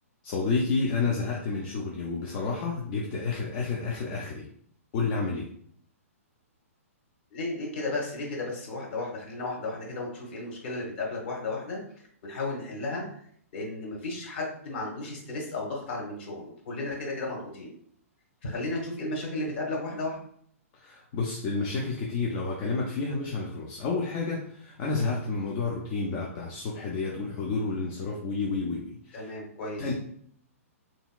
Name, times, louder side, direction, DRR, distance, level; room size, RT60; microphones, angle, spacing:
voice 1, 0.2-4.5 4.9-5.5 20.7-29.3 29.8-30.1, left 4 dB, 30° left, -2 dB, 0.5 m, -30 dB
voice 2, 7.3-11.8 12.2-13.0 13.5-17.7 18.4-20.2 29.1-29.9, left 2 dB, 45° left, -2 dB, 1.2 m, -34 dB
3.5 x 2.8 x 2.3 m, 0.62 s
figure-of-eight pair, 115°, 8 cm